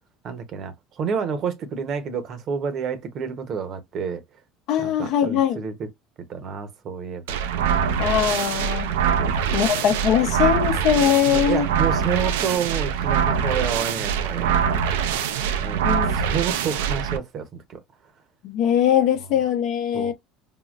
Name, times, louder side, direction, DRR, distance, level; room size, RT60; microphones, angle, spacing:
voice 1, 0.2-4.2 4.8-5.9 6.3-8.1 9.2-9.6 11.3-14.6 15.6-15.8 16.1-17.8 19.9-20.1, right 6 dB, 50° right, 0.8 m, -29 dB
voice 2, 4.7-5.6 8.0-8.9 9.5-11.7 15.8-16.1 18.4-20.1, left 9 dB, 65° left, 0.7 m, -21 dB
sound 1, 7.3-17.2, right 7 dB, 85° right, 0.4 m, -23 dB
3.6 x 2.0 x 2.4 m
supercardioid pair, 90°, 0 cm